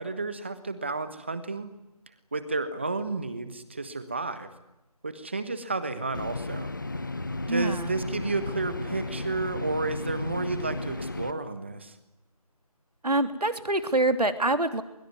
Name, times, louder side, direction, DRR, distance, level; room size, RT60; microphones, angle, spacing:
voice 1, 0.0-1.7 2.3-4.5 5.0-6.7 7.5-12.0, right 3 dB, 20° right, 11 dB, 1.3 m, -31 dB
sound 1, 6.1-11.3, left 2 dB, 30° left, 1.1 m, -34 dB
voice 2, 7.5-7.9 13.0-14.8, right 2 dB, 85° right, 8 dB, 3.3 m, -25 dB
23.0 x 23.0 x 9.6 m, 0.92 s
figure-of-eight pair, 175°, 20 cm